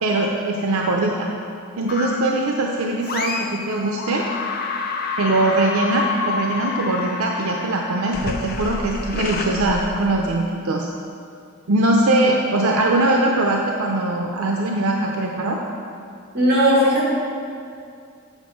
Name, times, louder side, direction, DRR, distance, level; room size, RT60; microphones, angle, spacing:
voice 1, 0.0-1.3 1.8-4.3 5.2-10.9 11.7-15.6, right 2 dB, 80° right, 0 dB, 0.6 m, -21 dB
sound 1, 1.9-2.5 3.0-3.7 4.0-10.4, left 4 dB, 45° left, 0.6 m, -28 dB
voice 2, 16.3-17.1, equal, 45° right, -5 dB, 2.4 m, -16 dB
7.3 x 6.9 x 5.2 m, 2.4 s
head